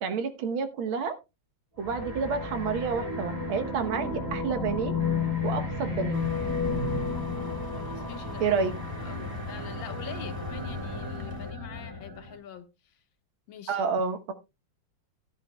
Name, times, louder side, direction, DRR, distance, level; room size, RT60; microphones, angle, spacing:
voice 1, 0.0-1.2 1.8-4.9 5.4-6.3 8.4-8.7 13.7-14.3, right 5 dB, 85° right, 1.9 m, -29 dB
sound 1, 1.8-12.4, left 4 dB, 20° right, 2.0 m, -32 dB
sound 2, 6.1-11.5, right 2 dB, 10° left, 1.7 m, -44 dB
voice 2, 7.7-8.6 9.0-12.9 13.5-13.9, left 8 dB, 75° left, 1.8 m, -45 dB
14.0 x 10.5 x 2.2 m
omnidirectional pair, 2.2 m